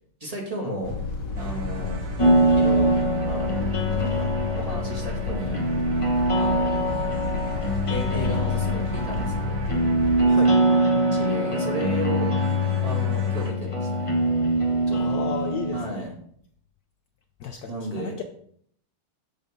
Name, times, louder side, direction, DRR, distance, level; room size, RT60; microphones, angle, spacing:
voice 1, 0.2-1.0 1.4-2.0 2.6-2.9 3.3-5.7 6.4-7.1 7.9-9.6 11.1-12.3 12.8-14.1 14.9-15.2 15.7-16.1 17.7-18.2, right 2 dB, 15° right, -2 dB, 2.0 m, -34 dB
sound 1, 0.8-10.3, left 2 dB, 55° left, 1.8 m, -31 dB
sound 2, 1.4-13.5, right 4 dB, 60° right, 1.5 m, -39 dB
sound 3, 2.2-15.9, equal, 25° left, 0.6 m, -23 dB
voice 2, 10.2-10.6 14.9-16.1 17.4-18.2, left 6 dB, 85° left, 5 dB, 0.8 m, -33 dB
7.3 x 5.5 x 5.1 m, 0.65 s
omnidirectional pair, 2.4 m